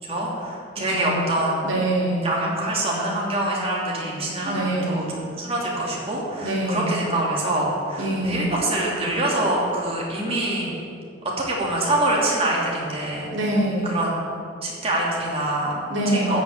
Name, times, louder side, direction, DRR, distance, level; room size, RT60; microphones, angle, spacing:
voice 1, 0.0-1.7 2.2-10.7 11.4-13.3 13.8-14.2 14.6-16.4, right 1 dB, 30° right, -3 dB, 2.8 m, -25 dB
voice 2, 0.9-1.3 1.6-2.4 4.4-5.1 6.4-7.0 8.0-8.5 13.3-13.9 15.9-16.4, right 1 dB, 80° right, -3 dB, 2.9 m, -24 dB
13.5 x 5.5 x 8.7 m, 2.5 s
head